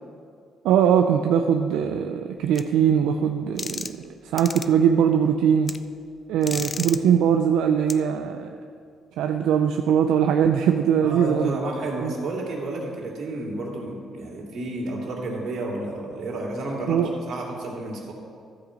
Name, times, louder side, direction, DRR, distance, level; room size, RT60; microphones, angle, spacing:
voice 1, 0.6-3.9 4.2-5.8 6.3-8.6 9.2-11.6 12.0-12.1 16.9-17.2, right 8 dB, 90° right, 5 dB, 0.4 m, -21 dB
sound 1, 2.5-2.6 3.6-4.0 4.4-4.7 5.7-5.8 6.4-7.0 7.9-8.0, left 4 dB, 30° left, 0.4 m, -32 dB
voice 2, 11.0-18.1, right 2 dB, 65° right, -2 dB, 2.7 m, -31 dB
13.5 x 5.0 x 7.0 m, 2.2 s
cardioid pair, 90°, 0 cm